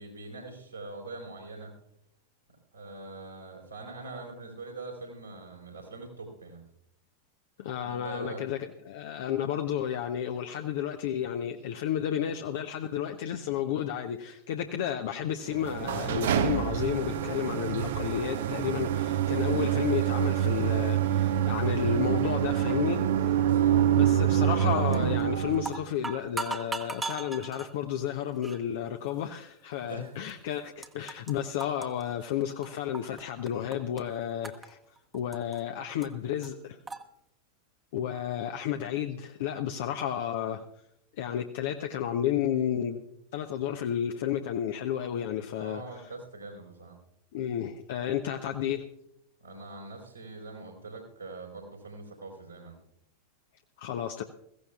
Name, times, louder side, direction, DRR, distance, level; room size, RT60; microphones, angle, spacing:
voice 1, 0.0-1.7 2.7-6.6 7.8-8.4 23.4-23.8 29.8-30.2 45.5-47.0 49.4-52.8, right 3 dB, 85° right, -2 dB, 4.2 m, -43 dB
voice 2, 7.6-8.6 8.9-23.4 24.0-34.8 35.1-36.8 37.9-40.6 41.2-43.0 43.3-46.0 47.3-48.9 53.8-54.2, left 10 dB, 55° left, 6 dB, 0.6 m, -32 dB
sound 1, 15.5-25.8, right 10 dB, 60° right, 0.6 m, -26 dB
sound 2, 24.9-25.2 25.5-27.7 28.4-28.6 29.4-29.5 30.3-30.4 30.6-31.3 31.6-33.2 33.5-34.0 34.4-35.6 36.0-36.1 36.4-36.5 36.9-37.0, right 3 dB, 10° right, 1.0 m, -37 dB
21.5 x 15.5 x 2.4 m, 0.76 s
figure-of-eight pair, 90°, 0 cm